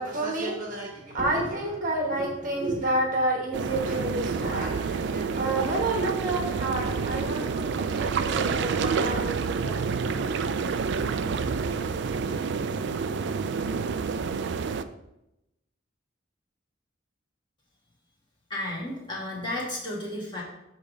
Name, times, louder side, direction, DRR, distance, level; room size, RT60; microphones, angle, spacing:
voice 1, 0.0-9.8, right 2 dB, 45° right, 0 dB, 1.1 m, -29 dB
sound 1, 3.5-14.8, right 5 dB, 60° right, 0.3 m, -28 dB
voice 2, 18.5-20.4, left 1 dB, 25° left, -5 dB, 1.7 m, -33 dB
7.1 x 3.3 x 5.2 m, 0.89 s
head